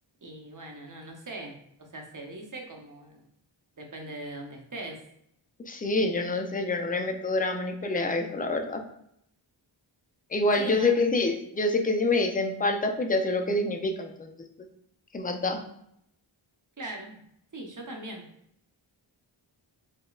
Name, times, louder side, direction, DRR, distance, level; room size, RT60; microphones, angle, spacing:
voice 1, 0.2-3.2 3.8-5.1 10.6-10.9 16.8-17.2 17.5-18.3, right 2 dB, 40° right, 1 dB, 0.8 m, -40 dB
voice 2, 5.7-8.8 10.3-14.3 15.1-15.6, left 2 dB, 20° left, 4 dB, 0.4 m, -26 dB
4.9 x 2.2 x 2.4 m, 0.72 s
wide cardioid pair, 70°, 48 cm